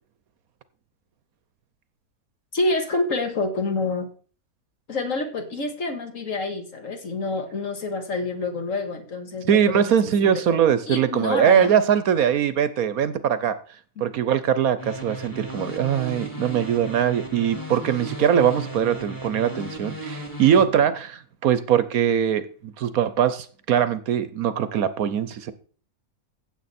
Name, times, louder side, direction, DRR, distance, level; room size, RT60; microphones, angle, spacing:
voice 1, 2.5-4.1 4.9-10.6 10.9-11.7, left 3 dB, 55° left, 1.9 m, -28 dB
voice 2, 9.5-13.6 14.0-25.5, right 8 dB, 65° right, 1.1 m, -21 dB
sound 1, 14.8-20.6, right 1 dB, 10° left, 2.4 m, -35 dB
15.5 x 7.7 x 4.2 m
omnidirectional pair, 1.7 m